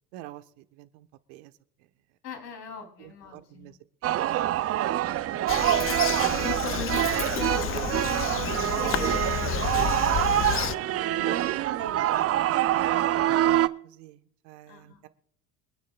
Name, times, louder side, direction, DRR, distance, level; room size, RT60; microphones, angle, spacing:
voice 1, 0.1-1.5 1.8-1.9 3.0-4.2 8.9-9.2 11.2-12.3 12.7-15.1, right 14 dB, 65° right, 11 dB, 1.3 m, -43 dB
voice 2, 2.2-3.8 5.0-5.9 6.2-9.2 9.5-11.4 14.7-15.0, left 3 dB, 80° left, 5 dB, 3.5 m, -40 dB
sound 1, 4.0-13.7, right 13 dB, 30° right, 0.5 m, -25 dB
Bird vocalization bird call bird song, 5.5-10.7, left 11 dB, 30° left, 0.5 m, -31 dB
25.5 x 9.6 x 2.4 m, 0.73 s
hypercardioid pair, 75°, 47 cm